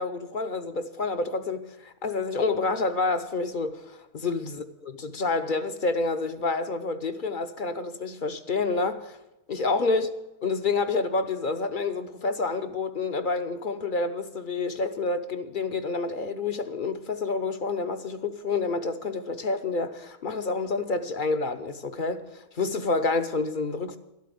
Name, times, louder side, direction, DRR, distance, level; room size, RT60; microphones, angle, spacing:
voice 1, 0.0-4.6 5.0-9.2 9.5-10.1 10.4-24.0, left 3 dB, 45° left, 0.8 m, -28 dB
13.0 x 8.4 x 8.1 m
omnidirectional pair, 1.5 m